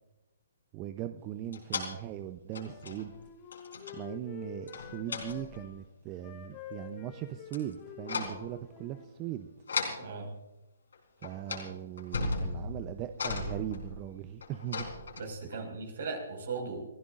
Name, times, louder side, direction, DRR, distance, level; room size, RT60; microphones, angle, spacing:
voice 1, 0.7-3.1 3.9-9.5 11.2-14.9, right 12 dB, 30° right, 9 dB, 0.7 m, -39 dB
sound 1, 1.5-1.9 2.5-3.2 3.5-4.0 4.7-5.7 7.5-7.7 8.0-8.5 9.7-10.0 10.9-11.0 11.2-11.7 12.0-15.6, left 3 dB, 75° left, 4.0 m, -36 dB
Wind instrument woodwind instrument, 2.6-5.7 6.1-9.6, left 8 dB, 30° left, 3.3 m, -48 dB
voice 2, 10.0-10.3 15.2-16.8, right 4 dB, 65° right, 3 dB, 5.4 m, -38 dB
29.5 x 15.5 x 2.6 m, 1.0 s
figure-of-eight pair, 135°, 0 cm